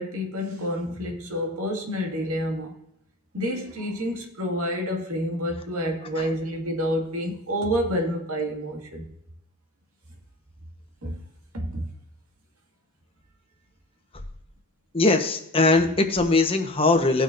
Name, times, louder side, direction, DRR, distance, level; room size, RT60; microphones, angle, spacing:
voice 1, 0.0-2.7 3.3-9.1 11.0-11.2 11.5-11.9, equal, 85° right, 2 dB, 2.1 m, -28 dB
voice 2, 14.9-17.2, left 3 dB, 25° left, 4 dB, 1.1 m, -20 dB
18.0 x 6.3 x 2.6 m, 0.81 s
head